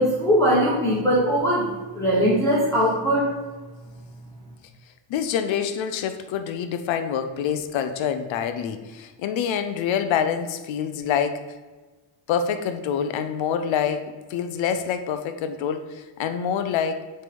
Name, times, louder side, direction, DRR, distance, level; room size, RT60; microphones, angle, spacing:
voice 1, 0.0-3.3, equal, 5° left, -8 dB, 1.4 m, -21 dB
voice 2, 5.1-11.4 12.3-17.0, left 8 dB, 85° left, 9 dB, 0.7 m, -26 dB
7.6 x 3.4 x 5.2 m, 1.3 s
cardioid pair, 165°, 45 cm